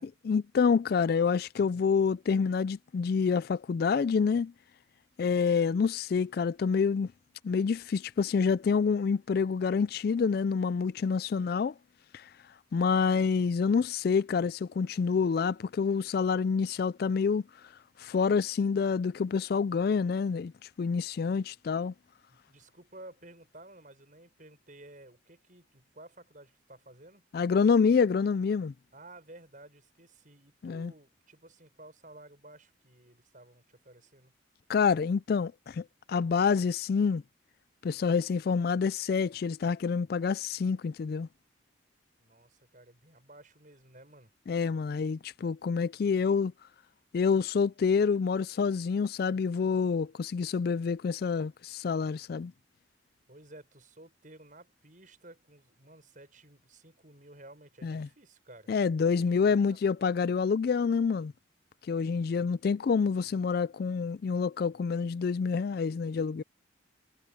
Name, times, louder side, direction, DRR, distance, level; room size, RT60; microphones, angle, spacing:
voice 1, 0.2-4.5 5.2-7.1 7.4-11.7 12.1-12.2 12.7-17.4 18.0-20.5 20.8-21.9 27.3-28.7 30.6-30.9 34.7-37.2 37.8-41.3 44.5-46.5 47.1-52.5 57.8-58.1 58.7-61.3 61.9-66.4, left 5 dB, 50° left, 0.3 m, -27 dB
voice 2, 22.3-27.2 28.9-34.3 42.2-44.3 53.3-58.8 59.0-59.9 62.3-62.6, right 1 dB, 40° right, 6.8 m, -54 dB
head